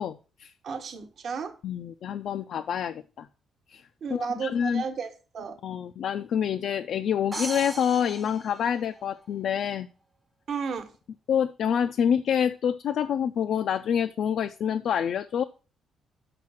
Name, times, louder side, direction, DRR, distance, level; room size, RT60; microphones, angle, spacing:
voice 1, 0.0-0.5 1.6-3.3 3.7-3.8 4.1-4.8 5.6-9.9 11.3-15.4, left 8 dB, 55° left, 8 dB, 0.4 m, -27 dB
voice 2, 0.6-1.5 4.0-5.6 10.5-10.9, right 6 dB, 45° right, 7 dB, 1.2 m, -33 dB
sound 1, 7.3-9.3, right 2 dB, 15° right, 0.7 m, -38 dB
6.5 x 5.9 x 6.1 m, 0.35 s
cardioid pair, 175°, 0 cm